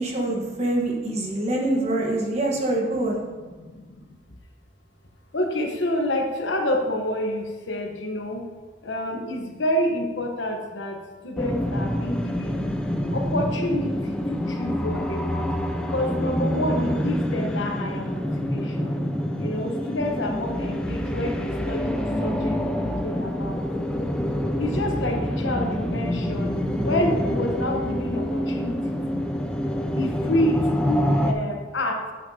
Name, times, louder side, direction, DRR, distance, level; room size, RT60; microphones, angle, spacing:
voice 1, 0.0-3.2, right 1 dB, 35° right, -1 dB, 1.3 m, -25 dB
voice 2, 3.5-4.2 5.3-8.5 8.8-12.8 13.1-15.5 15.9-19.0 19.4-23.6 24.6-26.5 26.8-29.2 29.8-32.0, left 1 dB, 75° left, 3 dB, 1.1 m, -28 dB
sound 1, 11.4-31.3, equal, 5° left, 0.4 m, -26 dB
9.1 x 7.9 x 2.8 m, 1.4 s
head